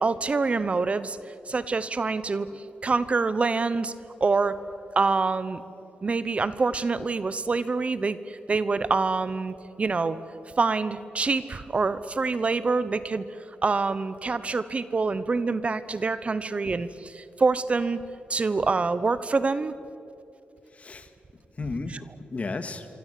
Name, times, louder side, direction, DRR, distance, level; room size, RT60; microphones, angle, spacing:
voice 1, 0.0-1.2 1.5-2.5 2.8-3.9 4.2-4.6 5.0-5.6 6.0-10.2 10.6-13.2 13.6-18.0 18.3-19.7 21.9-22.0, right 4 dB, 35° right, 14 dB, 1.0 m, -26 dB
voice 2, 20.7-22.9, left 3 dB, 40° left, 9 dB, 2.1 m, -35 dB
25.5 x 25.0 x 8.5 m, 2.7 s
cardioid pair, 95°, 3 cm